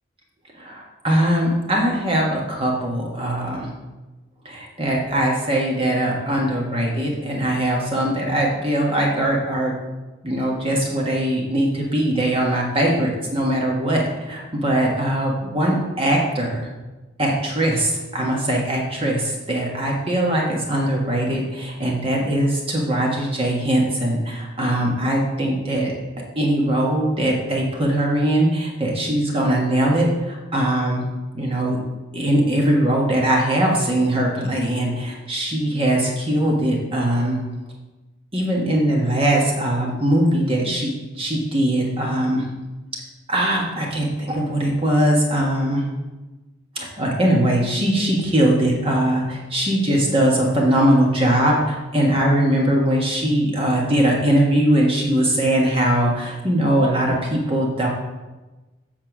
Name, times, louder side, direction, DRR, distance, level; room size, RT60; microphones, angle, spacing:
voice 1, 0.6-3.7 4.4-9.7 10.2-16.7 17.2-25.9 26.3-31.0 31.3-31.8 32.1-37.4 38.3-42.5 43.3-45.9 46.7-57.9, right 1 dB, 30° right, -1 dB, 1.3 m, -21 dB
8.3 x 4.3 x 6.0 m, 1.1 s
head